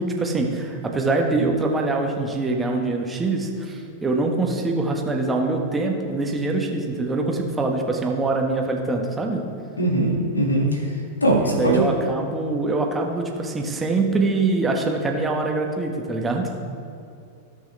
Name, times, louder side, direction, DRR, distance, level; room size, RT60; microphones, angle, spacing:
voice 1, 0.0-9.4 11.4-16.5, right 3 dB, 15° right, 1 dB, 1.4 m, -24 dB
voice 2, 9.8-10.8 11.2-11.8, right 1 dB, 80° left, 0 dB, 2.0 m, -20 dB
17.0 x 6.2 x 3.3 m, 2.6 s
figure-of-eight pair, 90°, 0 cm